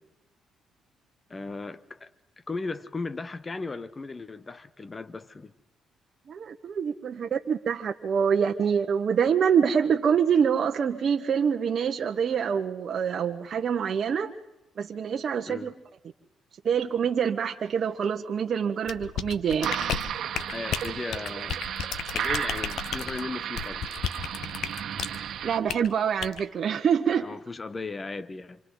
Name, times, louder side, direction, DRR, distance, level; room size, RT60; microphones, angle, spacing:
voice 1, 1.3-2.1 2.4-5.5 15.5-15.7 20.5-21.6 22.1-23.8 27.2-28.6, left 3 dB, 25° left, 1.0 m, -36 dB
voice 2, 6.3-14.3 14.8-15.7 16.6-19.7 25.4-27.3, right 7 dB, 55° right, 1.3 m, -25 dB
Floppy Jelly Goo Sounds, 18.9-25.2 25.7-25.9 26.2-26.4, left 8 dB, 75° left, 1.2 m, -33 dB
sound 1, 19.6-25.6, right 9 dB, 70° right, 1.5 m, -33 dB
28.0 x 26.5 x 4.0 m
cardioid pair, 90°, 0 cm